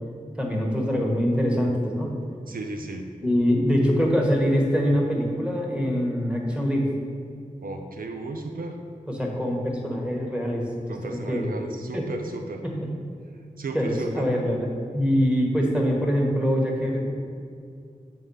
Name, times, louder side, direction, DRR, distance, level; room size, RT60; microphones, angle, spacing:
voice 1, 0.4-2.2 3.2-6.9 9.1-10.6 11.0-11.5 11.9-12.1 12.6-12.9 13.7-14.6 14.9-17.1, equal, 5° right, -1 dB, 1.5 m, -24 dB
voice 2, 2.5-3.1 7.6-8.8 10.9-12.6 13.6-14.3, right 3 dB, 85° right, 4 dB, 0.5 m, -35 dB
7.8 x 3.7 x 5.6 m, 2.3 s
wide cardioid pair, 55°, 14 cm